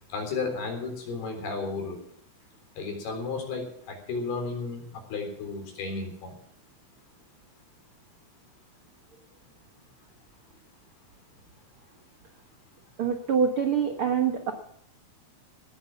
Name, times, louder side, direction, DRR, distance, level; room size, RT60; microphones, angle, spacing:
voice 1, 0.1-2.0 2.8-6.3, left 4 dB, 75° left, 3 dB, 5.7 m, -33 dB
voice 2, 13.0-14.5, right 7 dB, 85° right, 5 dB, 1.2 m, -25 dB
18.0 x 9.7 x 7.1 m, 0.66 s
omnidirectional pair, 4.5 m